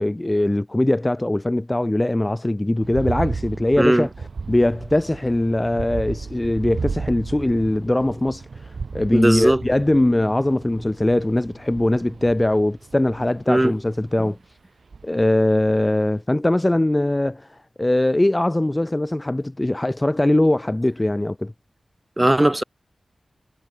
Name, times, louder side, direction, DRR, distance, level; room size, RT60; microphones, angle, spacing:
voice 1, 0.0-4.1 4.5-14.4 15.0-17.5 17.8-21.5, left 1 dB, 15° left, 0.4 m, -21 dB
sound 1, 2.8-14.2 14.9-15.3 15.7-15.8, right 4 dB, 65° right, 0.5 m, -34 dB
voice 2, 3.8-4.1 9.1-9.6 13.5-13.7 22.2-22.6, right 1 dB, 15° right, 0.8 m, -18 dB
wide cardioid pair, 115°, 0 cm